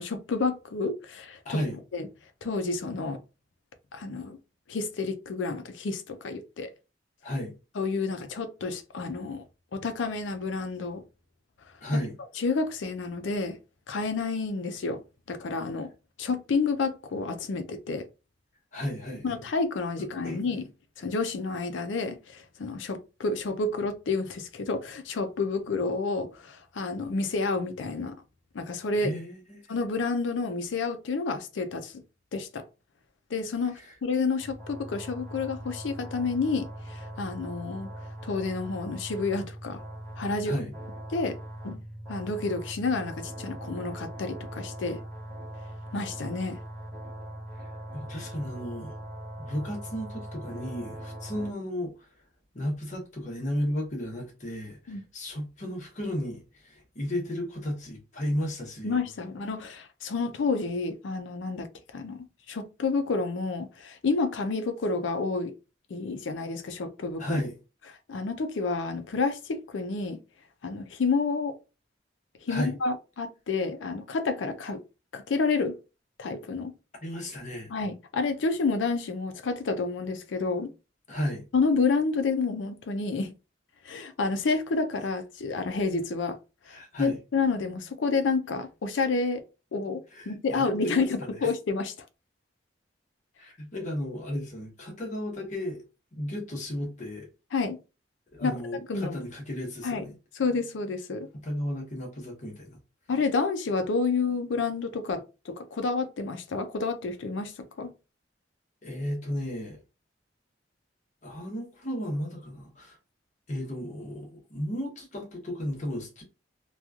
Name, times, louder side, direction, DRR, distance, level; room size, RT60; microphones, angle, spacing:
voice 1, 0.0-1.6 1.9-2.1 2.4-3.2 3.9-4.4 4.7-6.7 7.8-9.4 9.7-11.0 12.4-13.6 13.9-15.0 15.3-15.9 16.2-18.1 19.2-20.7 21.0-28.2 28.5-29.1 29.7-32.0 32.3-32.6 33.3-37.9 38.2-39.8 40.2-40.6 41.1-41.4 41.6-41.8 42.1-45.0 45.9-46.6 54.9-55.0 58.8-61.7 61.9-65.5 65.9-67.4 68.1-70.2 70.6-71.5 72.4-74.8 75.1-75.8 76.2-76.7 77.7-80.7 81.5-83.3 83.8-86.4 86.7-89.4 89.7-91.9 97.5-97.8 98.4-98.5 98.9-99.2 99.8-100.1 100.3-101.3 103.1-107.5 107.8-107.9, left 4 dB, 75° left, 0.4 m, -29 dB
voice 2, 1.4-1.8 7.2-7.5 11.8-12.1 18.7-19.2 20.2-20.4 29.0-29.6 33.8-33.9 40.4-40.7 47.6-47.7 47.9-48.9 49.4-52.1 52.5-59.0 67.2-67.5 72.5-72.7 77.0-77.7 81.1-81.5 86.7-87.2 90.1-91.4 93.4-95.8 96.1-97.3 98.3-100.1 101.3-102.8 108.8-109.8 111.2-113.0 113.5-116.2, equal, 40° left, 0.9 m, -34 dB
sound 1, 34.4-51.5, right 1 dB, 10° left, 1.4 m, -41 dB
3.0 x 2.3 x 2.3 m
head